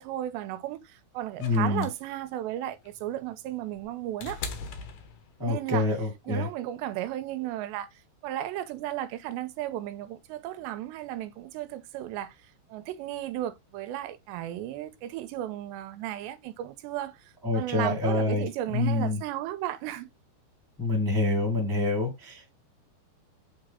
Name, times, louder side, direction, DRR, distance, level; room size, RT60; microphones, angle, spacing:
voice 1, 0.0-4.4 5.4-5.9 6.3-7.9 8.2-12.4 12.7-20.1, right 13 dB, 85° right, 2.9 m, -34 dB
sound 1, 1.4-5.7 6.9-7.0, left 4 dB, 80° left, 1.5 m, -41 dB
voice 2, 1.4-1.9 5.4-6.5 17.4-19.2 20.8-22.5, left 2 dB, 10° left, 1.3 m, -27 dB
7.9 x 4.2 x 3.7 m
omnidirectional pair, 5.0 m